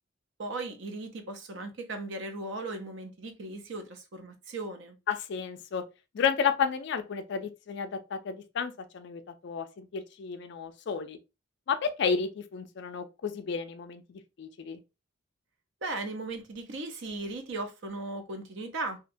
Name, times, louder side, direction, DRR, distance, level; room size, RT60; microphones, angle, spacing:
voice 1, 0.4-5.0 15.8-19.0, right 2 dB, 55° right, 0.5 m, -37 dB
voice 2, 5.1-5.8 6.1-11.2 11.7-14.8, left 6 dB, 55° left, 0.3 m, -32 dB
2.7 x 2.1 x 2.5 m
head